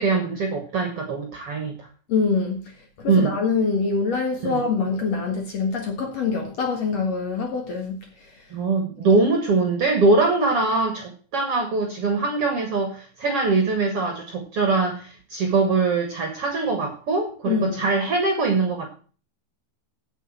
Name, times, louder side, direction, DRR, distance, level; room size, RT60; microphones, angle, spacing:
voice 1, 0.0-1.9 3.1-3.3 4.4-4.6 8.5-18.9, right 3 dB, 55° right, 1.8 m, -22 dB
voice 2, 2.1-2.6 3.0-8.0 17.5-17.9, left 4 dB, 50° left, 2.3 m, -24 dB
8.3 x 7.3 x 7.3 m
omnidirectional pair, 4.4 m